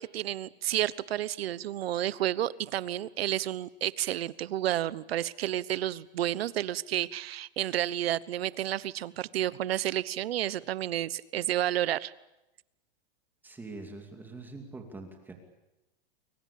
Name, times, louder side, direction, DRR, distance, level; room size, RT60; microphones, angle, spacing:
voice 1, 0.0-12.1, right 12 dB, 80° right, 19 dB, 1.1 m, -31 dB
voice 2, 13.4-15.3, right 3 dB, 5° right, 3 dB, 2.6 m, -44 dB
29.5 x 22.5 x 8.6 m, 0.96 s
supercardioid pair, 170°, 30 cm